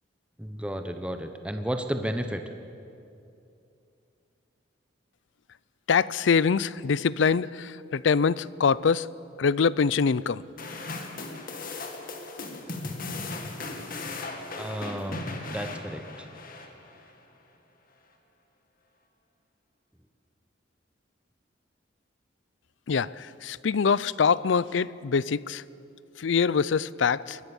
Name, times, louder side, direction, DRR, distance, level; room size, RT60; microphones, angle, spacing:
voice 1, 0.4-2.4 14.6-15.2 15.5-16.0, equal, 5° right, 6 dB, 0.9 m, -32 dB
voice 2, 5.9-9.1 9.4-10.4 22.9-25.6 26.2-27.4, left 5 dB, 75° left, 20 dB, 0.5 m, -24 dB
sound 1, 10.6-17.1, left 3 dB, 50° left, 2.2 m, -37 dB
23.0 x 20.0 x 7.1 m, 2.6 s
head